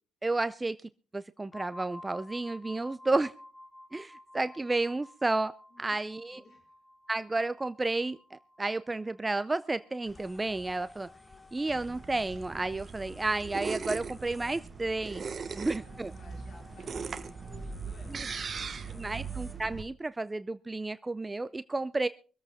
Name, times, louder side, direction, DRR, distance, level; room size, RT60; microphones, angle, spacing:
voice 1, 0.2-0.8 1.1-3.3 3.9-6.4 7.1-11.1 11.5-15.2 15.6-16.1 18.1-18.2 19.0-22.1, right 2 dB, 20° right, 13 dB, 0.5 m, -32 dB
sound 1, 1.5-11.1, left 1 dB, 40° left, 3.3 m, -53 dB
voice 2, 5.7-6.7 15.5-19.2, left 2 dB, 60° left, 2 dB, 3.4 m, -56 dB
sound 2, 10.1-19.7, left 2 dB, 15° left, 1.2 m, -55 dB
sound 3, 11.7-19.8, right 5 dB, 45° right, 1.1 m, -39 dB
24.0 x 8.2 x 3.5 m, 0.38 s
cardioid pair, 90°, 0 cm